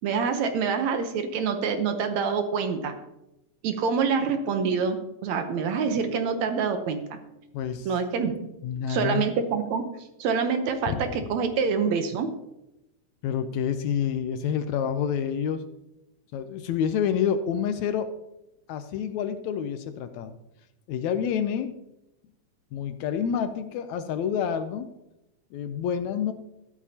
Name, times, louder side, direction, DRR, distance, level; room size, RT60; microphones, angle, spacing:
voice 1, 0.0-3.0 3.6-7.2 7.9-8.5 8.9-9.9 10.2-12.3, right 5 dB, 70° right, 7 dB, 2.1 m, -26 dB
voice 2, 7.5-7.9 8.6-9.3 10.9-11.0 13.2-15.6 16.3-18.1 18.7-20.4 20.9-21.7 22.7-24.9 25.5-26.3, left 8 dB, 75° left, 10 dB, 1.8 m, -28 dB
14.0 x 12.0 x 2.8 m, 0.91 s
omnidirectional pair, 3.6 m